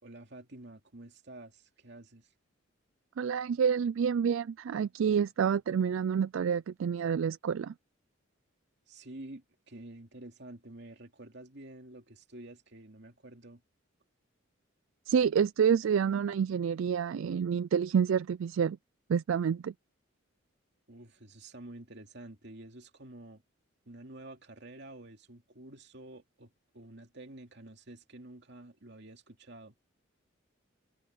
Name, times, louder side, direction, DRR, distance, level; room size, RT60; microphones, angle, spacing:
voice 1, 0.0-2.3 8.9-13.6 20.9-23.4 23.9-29.7, right 1 dB, 60° right, 2.7 m, -49 dB
voice 2, 3.2-7.7 15.1-18.8 19.1-19.7, right 7 dB, 75° right, 0.3 m, -28 dB
head